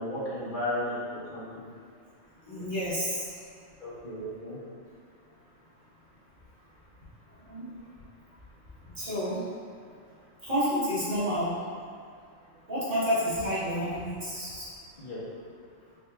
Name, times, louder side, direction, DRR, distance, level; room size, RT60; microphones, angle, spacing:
voice 1, 0.0-1.6 3.8-4.6 15.0-15.2, left 1 dB, 40° left, -11 dB, 1.2 m, -34 dB
voice 2, 2.5-3.2 7.4-7.7 9.0-9.4 10.4-11.5 12.7-14.7, equal, 45° right, -12 dB, 1.4 m, -29 dB
4.3 x 4.0 x 2.3 m, 2.2 s
omnidirectional pair, 1.3 m